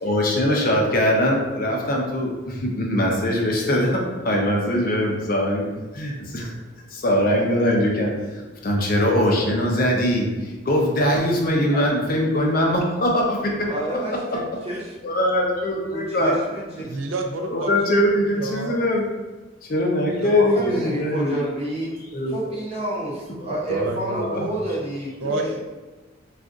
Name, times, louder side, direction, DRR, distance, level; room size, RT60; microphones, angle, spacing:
voice 1, 0.0-5.7 5.9-6.5 6.9-8.1 8.6-13.7 15.0-16.4 17.5-19.0 19.6-21.4 22.1-22.3 24.1-24.4 25.2-25.6, left 1 dB, 45° left, -1 dB, 0.5 m, -22 dB
voice 2, 13.7-14.9 15.9-16.7 20.4-21.9 22.3-25.6, right 1 dB, 30° right, -6 dB, 0.8 m, -30 dB
voice 3, 16.9-18.8 20.2-20.3 20.6-21.0 23.7-24.6 25.2-25.6, right 2 dB, 75° right, 3 dB, 0.4 m, -30 dB
2.4 x 2.4 x 3.7 m, 1.2 s
head